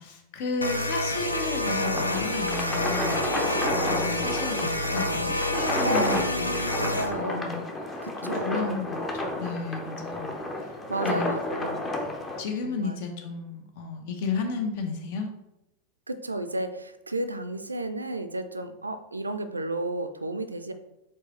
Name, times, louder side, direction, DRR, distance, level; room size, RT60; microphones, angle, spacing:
voice 1, 0.0-6.5 6.8-6.9 7.1-7.6 8.2-10.4 11.0-11.3 12.4-15.3, left 4 dB, 50° left, 4 dB, 0.8 m, -33 dB
sound 1, 0.6-7.1, left 1 dB, 85° left, 0.4 m, -28 dB
sound 2, 1.1-12.4, left 1 dB, 15° left, 0.7 m, -32 dB
voice 2, 5.6-7.5 8.0-8.8 10.9-11.8 12.6-13.0 16.1-20.7, right 2 dB, 80° right, 10 dB, 0.3 m, -32 dB
4.8 x 3.6 x 3.0 m, 0.92 s
figure-of-eight pair, 90°, 0 cm